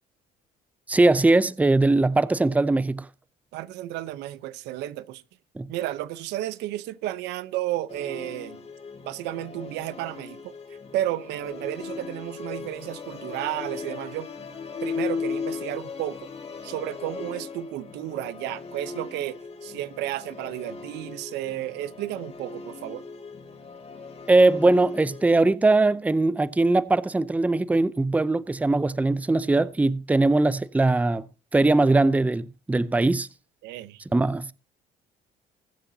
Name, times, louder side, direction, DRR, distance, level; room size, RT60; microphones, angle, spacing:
voice 1, 0.9-3.1 5.6-5.7 24.3-31.2 31.5-33.3 34.1-34.5, right 2 dB, 10° right, 0.5 m, -21 dB
voice 2, 3.5-5.2 5.7-8.6 9.0-10.6 10.9-14.3 14.8-16.3 16.6-23.0 33.6-34.0, right 14 dB, 90° right, 0.8 m, -32 dB
Musical instrument, 7.9-25.5, left 5 dB, 35° left, 2.7 m, -37 dB
21.0 x 7.8 x 2.8 m
cardioid pair, 110°, 17 cm